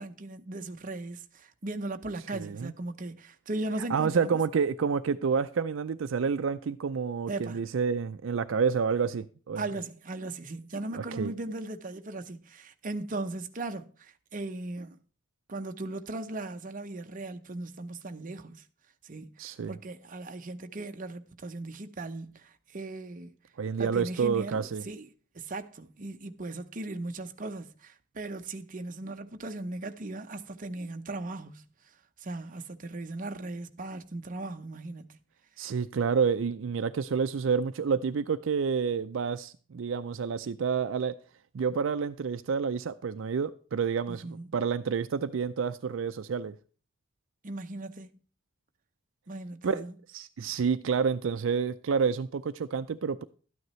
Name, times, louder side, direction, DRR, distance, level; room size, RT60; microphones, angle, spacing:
voice 1, 0.0-4.4 7.3-7.6 9.6-15.0 15.5-18.7 19.0-23.3 23.8-31.6 32.2-35.2 44.1-44.5 47.4-48.2 49.3-49.9, right 2 dB, 40° right, 0.7 m, -38 dB
voice 2, 2.3-2.7 3.9-9.6 10.9-11.3 19.4-19.8 23.6-24.8 35.6-41.1 41.5-46.5 49.6-49.8 50.1-53.2, right 6 dB, 70° right, 0.4 m, -29 dB
12.5 x 9.3 x 3.1 m
head